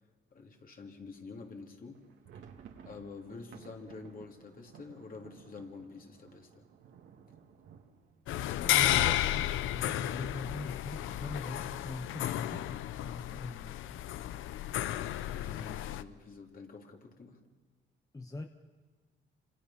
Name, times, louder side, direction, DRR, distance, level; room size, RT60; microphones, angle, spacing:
voice 1, 0.3-2.1 2.8-6.6 15.3-17.4, left 4 dB, 45° left, 2 dB, 3.2 m, -48 dB
sound 1, 1.9-9.6 9.9-10.0 10.3-10.5 11.1-11.6, right 7 dB, 80° right, 2.4 m, -56 dB
sound 2, 8.3-16.0, left 13 dB, 85° left, 0.8 m, -32 dB
voice 2, 8.6-14.0 18.1-18.5, left 3 dB, 15° left, 6 dB, 1.1 m, -42 dB
29.0 x 26.5 x 5.8 m, 1.4 s
cardioid pair, 90°, 20 cm